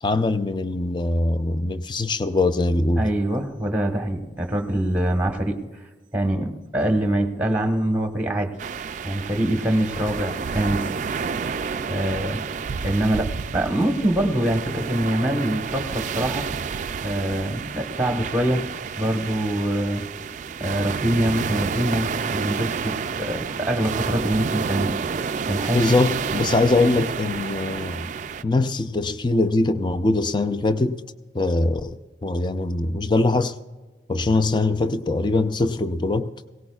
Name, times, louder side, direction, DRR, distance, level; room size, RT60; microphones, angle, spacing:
voice 1, 0.0-3.0 25.7-28.1 28.4-31.0 31.3-33.5 34.1-36.3, left 2 dB, 25° left, 0.5 m, -22 dB
voice 2, 3.0-5.7 6.1-8.6 9.0-11.0 11.9-12.4 12.8-16.5 17.0-18.6 19.0-20.1 20.6-25.0 25.5-26.0, right 1 dB, 10° right, 1.2 m, -24 dB
sound 1, 8.6-28.4, right 6 dB, 45° right, 0.3 m, -30 dB
19.0 x 17.5 x 2.3 m
head